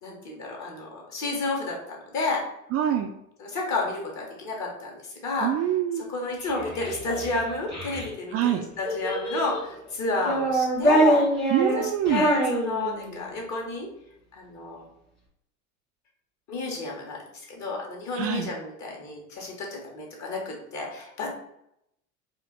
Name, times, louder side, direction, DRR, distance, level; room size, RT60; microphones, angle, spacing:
voice 1, 0.0-2.4 3.4-4.9 5.2-5.5 6.0-13.9 14.3-14.8 16.5-21.3, left 3 dB, 40° left, -1 dB, 1.6 m, -31 dB
voice 2, 2.7-3.1 5.4-6.0 8.3-8.6 11.5-12.3 18.2-18.5, right 10 dB, 35° right, 4 dB, 0.4 m, -25 dB
Child speech kid speaking, 6.4-8.1 8.8-9.7 10.2-13.3, right 1 dB, 85° left, 1.5 m, -25 dB
4.3 x 2.6 x 4.3 m, 0.79 s
figure-of-eight pair, 70°, 42 cm